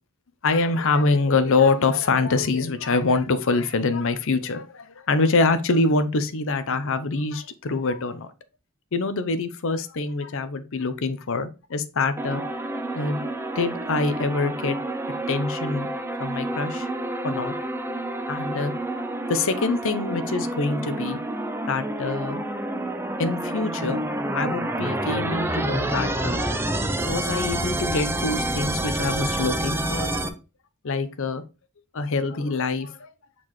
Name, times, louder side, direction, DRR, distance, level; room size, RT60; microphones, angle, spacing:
voice 1, 0.4-8.3 8.9-12.4 12.9-13.2 13.5-14.8 15.3-15.9 16.2-16.9 17.2-17.5 18.3-19.0 19.3-21.2 21.7-22.4 23.2-24.0 24.3-26.4 27.0-30.1 30.8-31.4 31.9-33.1, left 3 dB, 65° left, 0.7 m, -25 dB
sound 1, 12.2-30.3, right 1 dB, 10° right, 0.6 m, -28 dB
7.4 x 4.2 x 3.1 m
head